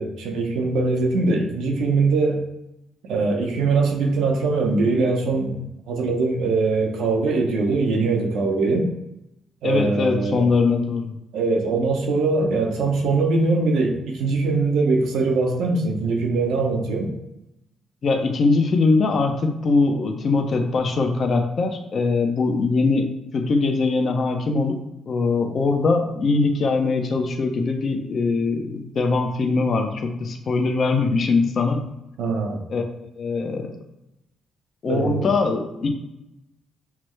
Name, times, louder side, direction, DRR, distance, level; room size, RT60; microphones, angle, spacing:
voice 1, 0.0-2.4 3.0-8.9 9.6-10.5 11.3-17.1 32.2-32.6 34.8-35.3, right 3 dB, 80° right, 2 dB, 0.9 m, -22 dB
voice 2, 9.6-11.1 18.0-24.8 25.1-31.8 32.7-32.8 33.2-33.8 34.8-35.9, left 3 dB, 50° left, 4 dB, 0.6 m, -22 dB
5.9 x 2.1 x 3.1 m, 0.90 s
cardioid pair, 90°, 0 cm